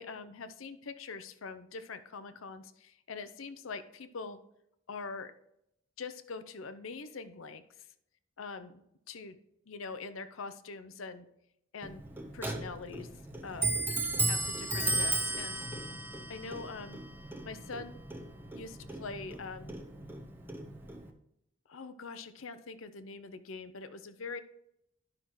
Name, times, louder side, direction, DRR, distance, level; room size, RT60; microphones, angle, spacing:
voice 1, 0.0-4.4 4.9-5.3 6.0-7.9 8.4-8.8 9.1-9.4 9.7-11.3 11.7-12.0 12.3-13.1 13.4-13.8 14.3-15.6 16.3-17.0 17.4-18.0 18.5-19.8 21.7-24.4, left 4 dB, 85° left, 11 dB, 0.7 m, -43 dB
Clock, 11.8-21.1, right 2 dB, 10° right, 0.7 m, -35 dB
12.5 x 5.8 x 3.2 m, 0.79 s
head